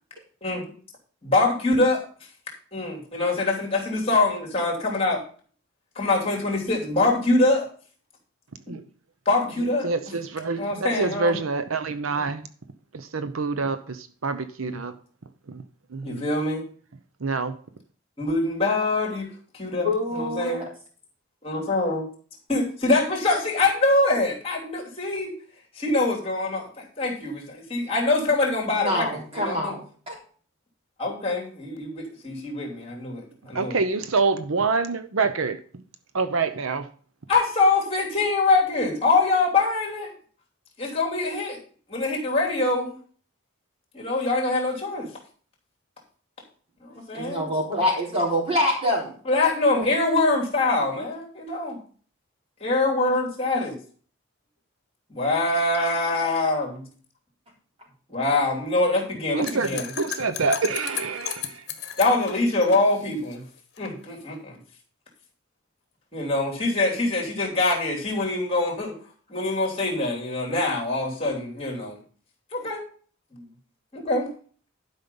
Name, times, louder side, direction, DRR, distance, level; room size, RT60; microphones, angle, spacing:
voice 1, 1.2-2.0 2.7-5.2 5.9-7.7 9.2-9.9 10.6-11.4 14.6-14.8 16.0-16.6 18.2-19.3 19.5-19.9 20.1-20.6 21.4-22.1 22.5-25.3 25.7-29.7 31.0-33.8 37.3-40.1 40.8-41.6 41.9-43.0 43.9-45.1 46.8-47.5 49.2-51.8 52.6-53.7 55.1-56.9 58.1-59.9 62.0-63.4 63.8-64.6 66.1-69.0 69.3-72.0 72.5-72.8 73.3-73.5 73.9-74.3, left 2 dB, 30° left, 3.0 m, -24 dB
voice 2, 9.8-12.5 12.9-14.9 15.5-15.6 15.9-16.3 17.2-17.5 33.5-35.8 36.1-36.9 59.3-61.7, right 4 dB, 75° right, 0.7 m, -26 dB
voice 3, 19.7-20.6 28.8-29.8 30.1-30.2 47.1-49.1 49.8-49.9, left 1 dB, 30° right, 3.8 m, -25 dB
sound 1, 59.4-63.9, left 9 dB, 55° left, 1.4 m, -35 dB
11.5 x 5.5 x 5.4 m
head